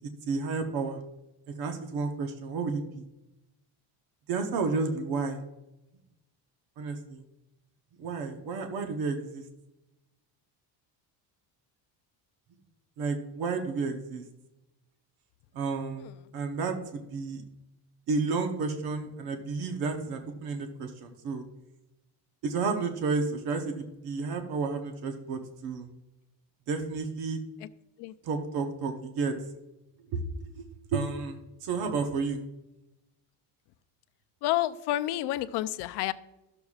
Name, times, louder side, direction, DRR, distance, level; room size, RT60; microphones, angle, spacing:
voice 1, 0.0-1.0 1.5-3.0 4.3-5.4 6.8-7.2 8.0-9.4 13.0-14.2 15.5-17.4 18.1-21.4 22.4-25.9 26.7-27.4 28.2-29.3 30.1-30.2 30.6-30.7 30.9-32.4, right 4 dB, 60° right, 5 dB, 1.0 m, -31 dB
voice 2, 34.4-36.1, left 14 dB, 70° left, 13 dB, 0.5 m, -29 dB
13.0 x 6.9 x 2.4 m, 0.93 s
cardioid pair, 165°, 41 cm